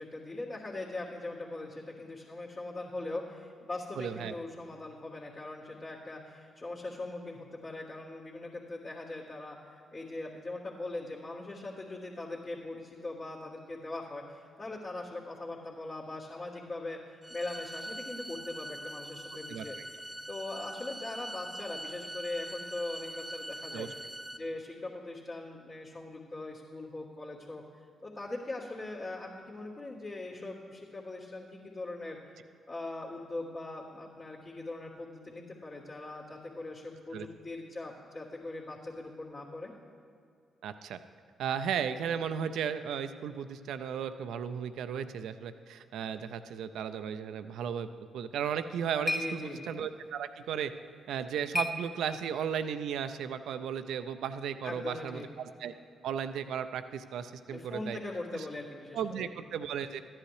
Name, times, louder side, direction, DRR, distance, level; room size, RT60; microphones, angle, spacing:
voice 1, 0.0-19.8 20.3-23.9 24.3-27.6 28.0-32.2 32.7-39.7 49.2-49.6 54.6-55.3 57.5-59.3, left 2 dB, 50° left, -9 dB, 2.0 m, -41 dB
voice 2, 4.0-4.3 19.5-19.8 23.7-23.9 37.1-37.3 40.6-41.0 41.4-47.9 48.1-50.7 51.1-55.7 56.0-58.0 58.3-58.5 58.9-60.0, right 8 dB, 70° right, 11 dB, 0.4 m, -35 dB
sound 1, 17.2-24.4, right 1 dB, 15° right, 0.6 m, -43 dB
sound 2, 48.3-52.5, left 1 dB, 20° left, 1.1 m, -39 dB
14.0 x 10.5 x 3.2 m, 2.4 s
hypercardioid pair, 45°, 0 cm